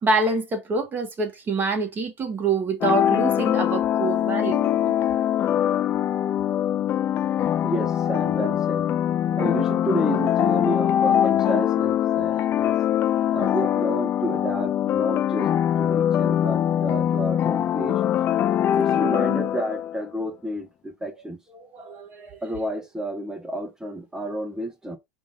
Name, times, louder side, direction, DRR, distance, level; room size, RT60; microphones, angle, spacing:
voice 1, 0.0-4.9 12.3-12.5 13.1-13.3 21.5-22.4, right 3 dB, 25° right, 1.4 m, -26 dB
sound 1, 2.8-20.0, left 10 dB, 35° left, 0.3 m, -22 dB
voice 2, 7.6-8.9 9.4-12.8 13.3-15.5 15.8-18.1 18.8-21.4 22.4-25.0, right 1 dB, 10° right, 0.7 m, -30 dB
5.1 x 2.5 x 3.5 m
supercardioid pair, 120°, 7 cm